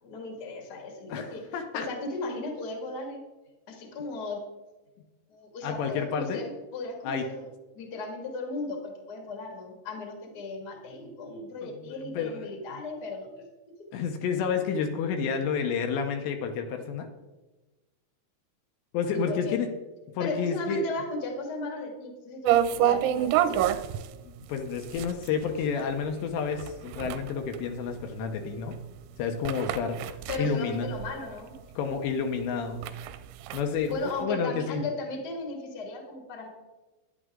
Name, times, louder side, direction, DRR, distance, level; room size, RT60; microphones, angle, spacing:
voice 1, 0.0-1.4 1.7-3.2 3.7-4.4 5.3-7.5 7.7-13.5 19.1-19.6 20.2-23.8 30.3-31.5 33.9-36.5, left 2 dB, 40° left, 2 dB, 1.4 m, -36 dB
voice 2, 1.1-1.9 5.6-6.4 7.0-7.2 11.6-12.5 13.9-17.1 18.9-19.7 20.2-20.8 24.2-28.8 29.2-30.0 30.4-30.9 31.8-32.8 33.5-34.8, left 6 dB, 75° left, 5 dB, 2.9 m, -30 dB
sound 1, 22.4-31.6 31.9-32.0 32.4-34.2, right 11 dB, 85° right, 2.9 m, -29 dB
11.0 x 10.5 x 3.7 m, 1.1 s
omnidirectional pair, 5.3 m